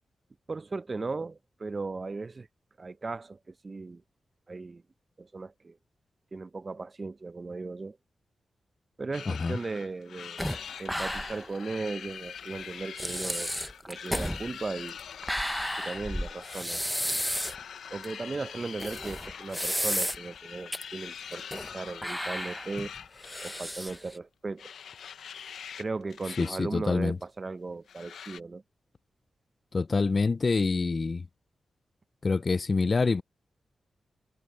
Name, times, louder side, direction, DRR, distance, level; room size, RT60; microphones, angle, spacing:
voice 1, 0.5-2.5 2.8-4.0 4.5-4.8 5.2-5.8 6.3-8.0 9.0-10.4 10.8-13.5 13.9-15.0 15.8-16.8 17.9-22.9 23.4-24.7 25.8-28.6, right 3 dB, 40° right, 0.7 m, -37 dB
sound 1, 9.1-24.1 24.6-25.8 26.1-26.5 26.8-26.9 27.9-28.4, left 8 dB, 90° left, 0.6 m, -44 dB
voice 2, 9.3-9.6 26.4-27.2 29.7-31.3 32.2-33.2, left 4 dB, 45° left, 0.4 m, -26 dB
sound 2, 10.4-11.6 11.9-12.0 12.6-12.7 13.0-17.6 18.0-18.1 18.8-20.4 20.7-20.8 21.3-21.7 22.0-24.2, equal, 5° left, 0.9 m, -33 dB
cardioid pair, 70°, 0 cm